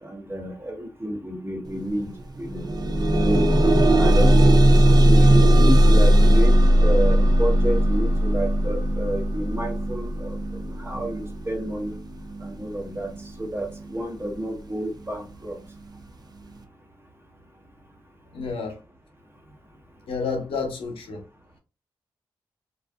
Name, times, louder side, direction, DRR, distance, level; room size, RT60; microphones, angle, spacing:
voice 1, 0.0-2.1 2.4-2.6 3.2-3.5 3.8-6.5 6.8-12.0 12.4-15.6, right 1 dB, 25° right, 1.0 m, -30 dB
sound 1, 1.7-1.8 2.2-13.2 14.0-14.1 14.6-14.7, right 1 dB, 45° right, 0.5 m, -18 dB
voice 2, 18.3-18.8 20.1-21.2, left 4 dB, 80° left, 0.7 m, -30 dB
2.6 x 2.3 x 2.3 m
supercardioid pair, 40°, 9 cm